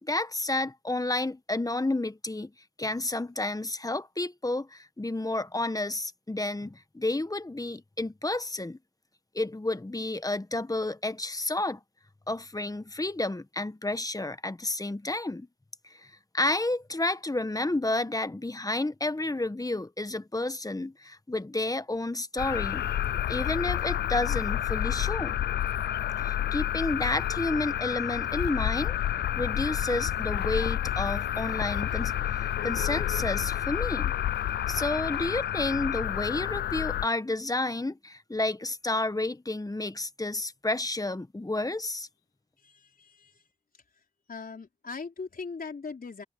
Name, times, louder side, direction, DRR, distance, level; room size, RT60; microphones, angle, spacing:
voice 1, 0.0-2.5 2.8-8.8 9.3-11.8 12.3-15.5 15.9-22.9 23.3-25.4 26.2-28.9 29.3-34.1 34.7-42.1, left 2 dB, 20° left, 1.3 m, -31 dB
sound 1, 22.4-37.1, left 11 dB, 90° left, 0.4 m, -29 dB
voice 2, 42.6-43.4 44.3-46.2, left 4 dB, 60° left, 4.5 m, -40 dB
cardioid pair, 40°, 17 cm